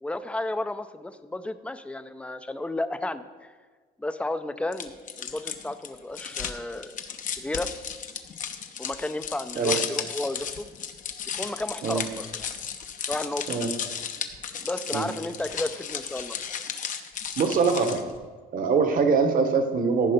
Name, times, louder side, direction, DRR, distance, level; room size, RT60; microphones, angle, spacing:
voice 1, 0.0-3.5 4.0-7.0 7.4-7.7 8.8-10.7 11.3-12.5 13.1-13.4 14.6-16.4, left 2 dB, 5° left, 11 dB, 0.5 m, -33 dB
sound 1, 4.7-18.2, left 7 dB, 50° left, 0.8 m, -34 dB
voice 2, 17.4-18.0 18.5-20.1, right 5 dB, 55° right, 7 dB, 1.3 m, -23 dB
14.5 x 5.5 x 5.2 m, 1.5 s
cardioid pair, 110°, 17 cm